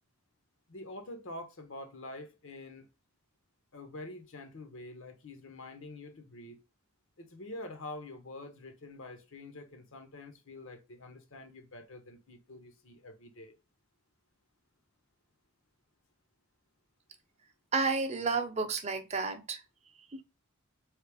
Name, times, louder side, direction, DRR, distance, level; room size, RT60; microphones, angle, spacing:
voice 1, 0.7-2.9 3.7-6.6 7.2-13.6, left 2 dB, 60° left, 0.9 m, -46 dB
voice 2, 17.7-19.6 20.1-20.2, right 4 dB, 30° right, 0.7 m, -31 dB
3.9 x 3.3 x 3.4 m
head